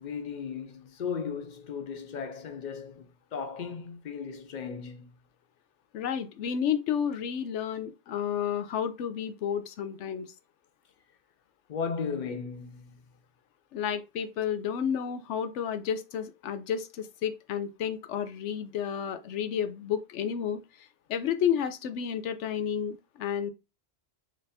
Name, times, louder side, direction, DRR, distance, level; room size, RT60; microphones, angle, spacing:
voice 1, 0.0-5.1 11.7-13.0, left 6 dB, 55° left, 0.6 m, -36 dB
voice 2, 5.9-10.3 13.7-23.5, left 8 dB, 85° left, 0.9 m, -31 dB
4.1 x 3.2 x 2.7 m
omnidirectional pair, 1.2 m